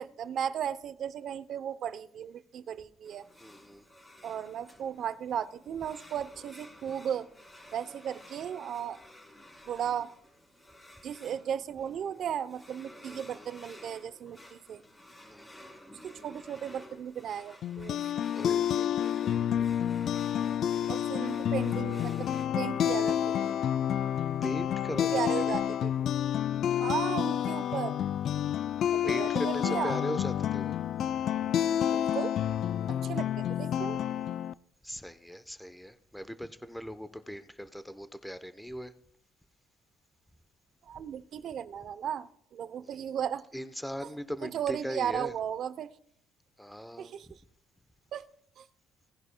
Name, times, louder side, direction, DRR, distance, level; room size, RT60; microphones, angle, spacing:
voice 1, 0.0-3.3 4.2-7.3 7.7-9.0 9.7-10.1 11.0-14.8 16.0-18.2 20.9-22.3 22.5-23.5 25.1-26.1 26.8-28.0 28.9-30.0 31.9-32.4 32.9-34.0 40.8-43.4 44.4-45.9 47.0-47.3 48.1-48.2 48.6-48.7, right 9 dB, 60° right, 14 dB, 0.7 m, -35 dB
sound 1, 3.0-22.5, left 1 dB, 20° left, 4.3 m, -53 dB
voice 2, 3.4-3.8 13.1-13.5 15.3-15.7 18.3-19.7 24.4-25.6 29.0-30.8 34.8-38.9 43.5-45.3 46.6-47.3, equal, 5° left, 11 dB, 0.8 m, -39 dB
sound 2, 17.6-34.5, left 10 dB, 65° left, 0.3 m, -29 dB
18.0 x 11.0 x 2.2 m, 0.65 s
supercardioid pair, 75°, 0 cm